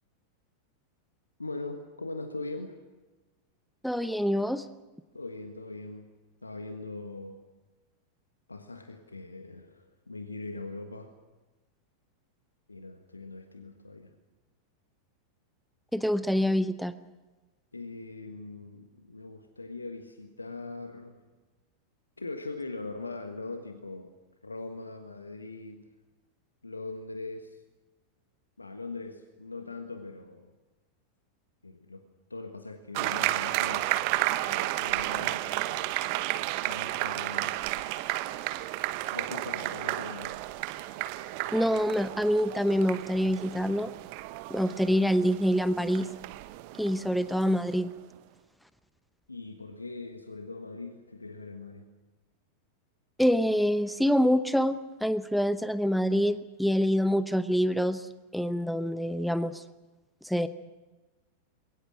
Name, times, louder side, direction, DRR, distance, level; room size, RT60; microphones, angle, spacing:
voice 1, 1.4-2.8 5.1-6.1 6.4-7.4 8.5-11.1 12.7-14.1 17.7-21.3 22.2-24.1 24.4-25.9 26.6-27.6 28.6-30.5 31.6-35.9 36.6-37.6 39.1-40.4 49.3-51.9, left 3 dB, 80° left, 7 dB, 1.4 m, -41 dB
voice 2, 3.8-4.7 15.9-16.9 41.5-43.9 44.5-46.1 46.8-47.9 53.2-59.6 60.2-60.5, equal, ahead, 13 dB, 0.8 m, -26 dB
sound 1, 32.9-47.9, right 17 dB, 45° right, 1.1 m, -32 dB
28.0 x 22.5 x 6.3 m, 1.2 s
figure-of-eight pair, 90°, 0 cm